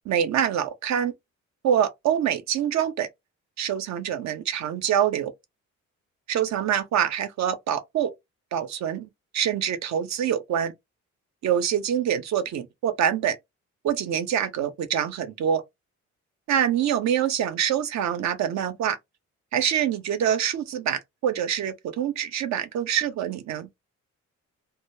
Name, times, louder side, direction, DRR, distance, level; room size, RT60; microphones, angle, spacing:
voice 1, 0.1-1.1 1.6-3.1 3.6-5.3 6.3-8.1 8.5-10.7 11.4-13.4 13.8-15.6 16.5-19.0 19.5-23.7, right 9 dB, 65° right, 0.6 m, -25 dB
2.1 x 2.0 x 3.1 m
cardioid pair, 90°, 30 cm